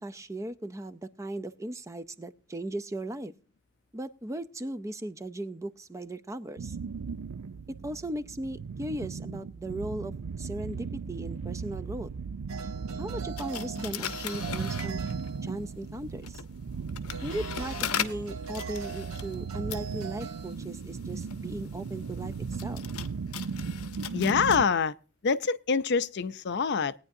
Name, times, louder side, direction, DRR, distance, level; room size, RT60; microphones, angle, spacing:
voice 1, 0.0-3.3 3.9-6.8 7.7-12.1 13.0-15.0 15.4-16.4 17.2-22.8, right 1 dB, 15° right, 0.5 m, -37 dB
sound 1, 6.6-24.7, right 5 dB, 90° right, 0.5 m, -37 dB
sound 2, 12.5-15.9 17.1-20.5, right 6 dB, 70° right, 1.2 m, -42 dB
sound 3, 13.4-15.4 16.1-24.6, left 9 dB, 80° left, 0.9 m, -39 dB
voice 2, 24.1-24.9 25.2-26.9, left 5 dB, 50° left, 0.5 m, -25 dB
19.5 x 9.5 x 2.6 m
head